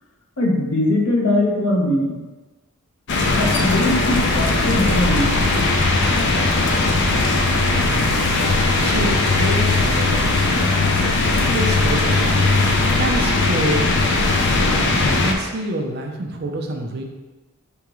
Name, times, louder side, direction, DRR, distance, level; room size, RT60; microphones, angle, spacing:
voice 1, 0.4-2.2 3.4-5.4, left 1 dB, 70° left, -2 dB, 1.0 m, -20 dB
sound 1, 3.1-15.3, left 2 dB, 55° left, 0.5 m, -18 dB
voice 2, 7.9-8.2 8.8-10.4 11.5-12.4 12.7-14.1 14.6-17.0, right 1 dB, 45° right, 3 dB, 0.5 m, -27 dB
4.8 x 3.5 x 3.0 m, 1.2 s
head